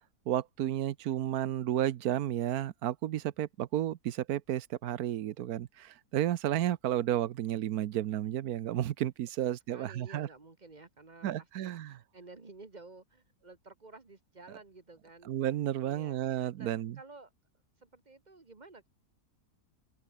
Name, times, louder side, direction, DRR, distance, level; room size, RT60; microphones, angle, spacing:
voice 1, 0.3-10.3 11.2-12.0 15.3-17.0, right 12 dB, 70° right, 1.2 m, -32 dB
voice 2, 9.4-15.4 15.8-17.3 17.8-18.9, right 3 dB, 30° right, 1.5 m, -53 dB
omnidirectional pair, 1.7 m